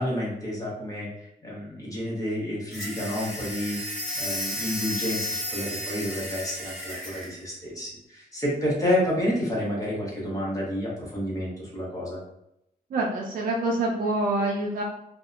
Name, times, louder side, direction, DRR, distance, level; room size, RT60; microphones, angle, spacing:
voice 1, 0.0-12.2, left 1 dB, 20° left, -6 dB, 0.8 m, -30 dB
sound 1, 2.7-7.3, equal, ahead, 1.3 m, -33 dB
voice 2, 12.9-14.8, right 2 dB, 60° right, -2 dB, 0.4 m, -26 dB
2.6 x 2.0 x 2.4 m, 0.80 s
wide cardioid pair, 175°, 16 cm